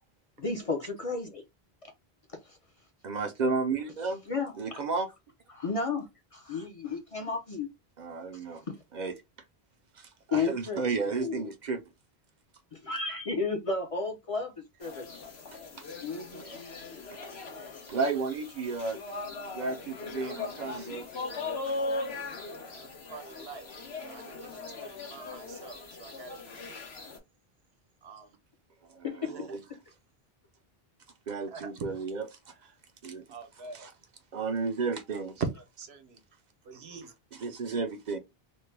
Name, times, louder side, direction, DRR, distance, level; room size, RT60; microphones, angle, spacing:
voice 1, 0.4-1.4 2.4-2.6 4.3-4.5 5.5-7.7 10.3-11.5 12.7-14.5 14.8-15.1 16.0-16.4 29.0-29.3, left 4 dB, 40° left, 0.6 m, -33 dB
voice 2, 3.0-4.2 4.6-5.1 8.0-8.6 8.9-9.1 10.0-11.8 16.4-16.6 17.1-17.2 17.9-19.0 19.5-21.1 21.7-21.8 28.9-29.6 31.3-32.2 33.0-33.2 33.7-33.9 34.3-35.4 37.3-38.2, right 4 dB, 55° right, 0.6 m, -32 dB
sound 1, 14.8-27.2, left 3 dB, 85° left, 1.2 m, -39 dB
voice 3, 20.2-21.0 22.7-26.8 28.0-28.4 31.5-31.8 33.3-33.9 35.1-35.5 35.8-36.2 36.6-37.1, right 5 dB, 80° right, 1.0 m, -43 dB
3.1 x 2.1 x 3.2 m
omnidirectional pair, 1.0 m